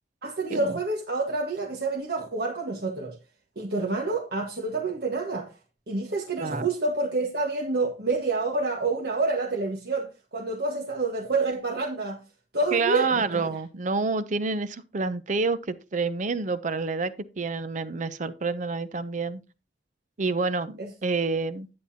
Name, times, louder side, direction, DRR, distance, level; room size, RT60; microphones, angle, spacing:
voice 1, 0.2-3.2 3.5-5.5 5.9-12.2 12.5-13.5 20.8-20.9, right 3 dB, 60° right, 1.5 m, -28 dB
voice 2, 6.4-6.7 12.7-19.4 20.2-21.7, right 4 dB, 45° right, 0.6 m, -28 dB
10.5 x 9.6 x 2.8 m
head